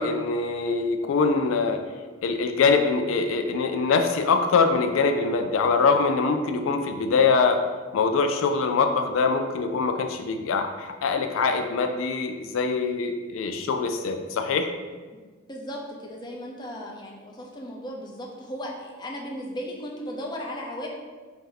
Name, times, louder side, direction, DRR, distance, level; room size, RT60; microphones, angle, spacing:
voice 1, 0.0-1.8 2.2-7.6 7.9-14.7, left 4 dB, 90° left, 6 dB, 0.4 m, -23 dB
voice 2, 15.4-20.9, equal, 20° left, -1 dB, 0.6 m, -36 dB
4.5 x 2.7 x 3.8 m, 1.4 s
head